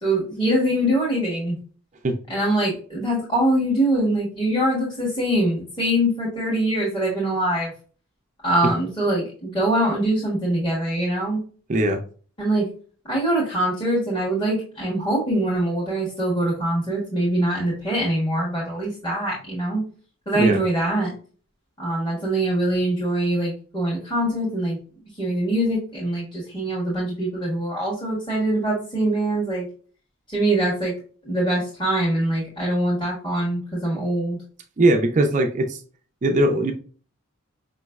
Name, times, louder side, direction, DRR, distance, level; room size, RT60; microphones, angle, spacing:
voice 1, 0.0-1.6 2.3-7.7 8.4-11.4 12.4-12.7 13.1-19.8 20.3-21.1 21.8-24.8 25.2-29.7 30.3-30.9 31.2-34.4, right 1 dB, 25° left, -6 dB, 1.5 m, -23 dB
voice 2, 11.7-12.0 20.3-20.6 34.8-35.8 36.2-36.7, right 1 dB, 35° right, 5 dB, 0.4 m, -20 dB
5.2 x 3.0 x 2.3 m, 0.41 s
head